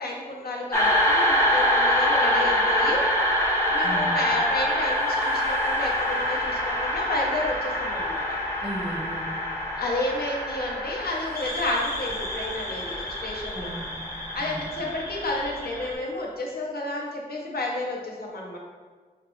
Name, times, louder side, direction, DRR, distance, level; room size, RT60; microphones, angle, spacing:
voice 1, 0.0-3.0 3.7-8.4 9.8-13.7 14.3-18.6, left 2 dB, 70° left, -2 dB, 0.7 m, -31 dB
sound 1, 0.7-15.9, equal, 15° left, 0.7 m, -25 dB
voice 2, 8.6-9.3 13.5-14.0 14.4-14.7, right 1 dB, 35° right, -4 dB, 0.6 m, -35 dB
5.0 x 2.0 x 3.0 m, 1.5 s
wide cardioid pair, 80°, 16 cm